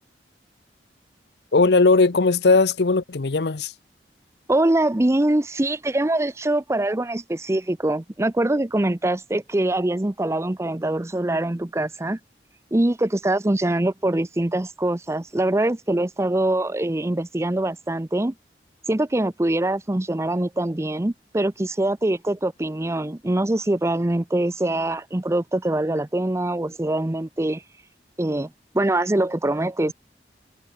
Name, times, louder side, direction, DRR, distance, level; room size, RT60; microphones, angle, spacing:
voice 1, 1.5-3.7, left 3 dB, 65° left, 0.8 m, -18 dB
voice 2, 4.5-12.2 12.7-18.3 18.9-27.6 28.2-28.5 28.7-29.9, right 1 dB, 15° right, 0.6 m, -23 dB
head